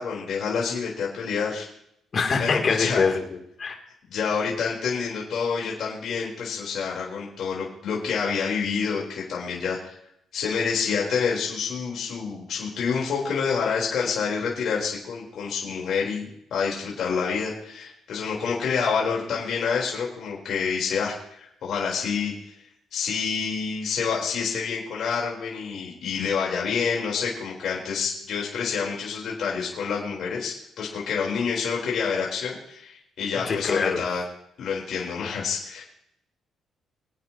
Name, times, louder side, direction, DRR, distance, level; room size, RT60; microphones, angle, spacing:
voice 1, 0.0-1.7 2.4-3.0 4.1-9.9 10.3-16.2 16.5-22.3 22.9-34.2 34.6-35.8, left 6 dB, 65° left, -3 dB, 4.3 m, -28 dB
voice 2, 2.1-3.7 33.4-34.0, left 5 dB, 45° left, 2 dB, 3.1 m, -24 dB
24.5 x 9.3 x 3.1 m, 0.73 s
cardioid pair, 90°, 0 cm